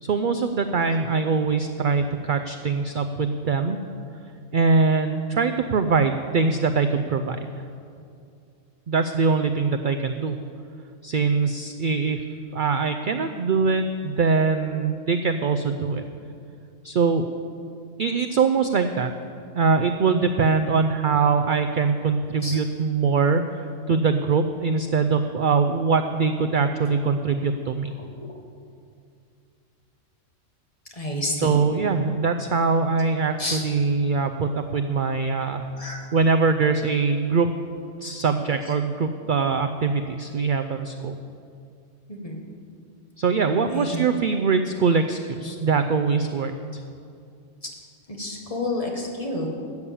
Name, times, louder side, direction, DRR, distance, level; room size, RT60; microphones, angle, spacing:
voice 1, 0.0-3.8 4.5-7.4 8.9-10.4 11.0-12.2 12.5-16.0 16.8-17.3 18.0-19.1 19.5-27.9 31.4-35.7 36.1-37.5 38.0-41.2 43.2-46.8, right 4 dB, 55° right, 7 dB, 0.6 m, -22 dB
voice 2, 30.9-31.6 33.4-33.6 35.8-36.1 42.1-42.4 43.7-43.9 48.1-49.5, left 1 dB, 30° left, 0 dB, 1.7 m, -29 dB
13.0 x 8.5 x 7.1 m, 2.4 s
omnidirectional pair, 1.3 m